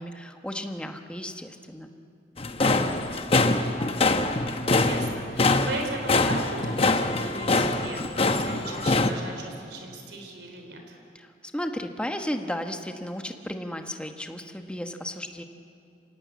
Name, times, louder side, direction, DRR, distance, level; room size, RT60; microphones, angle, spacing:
voice 1, 0.0-1.9 11.2-11.3 11.5-15.4, equal, 5° left, 5 dB, 1.1 m, -34 dB
sound 1, 2.4-9.1, left 2 dB, 35° left, 1.0 m, -24 dB
voice 2, 4.3-11.0, right 2 dB, 75° right, 2 dB, 3.6 m, -38 dB
26.5 x 18.0 x 8.5 m, 2.6 s
head